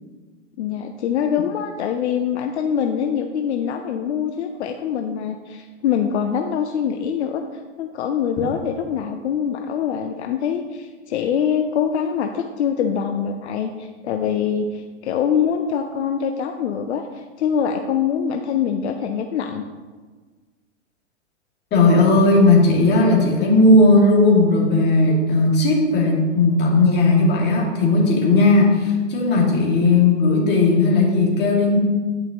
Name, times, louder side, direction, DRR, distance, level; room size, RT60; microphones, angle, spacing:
voice 1, 0.6-7.4 7.8-19.6, left 8 dB, 70° left, 5 dB, 0.6 m, -24 dB
voice 2, 21.7-31.8, left 2 dB, 30° left, -3 dB, 2.1 m, -16 dB
9.3 x 5.8 x 2.9 m, 1.4 s
hypercardioid pair, 120°, 35 cm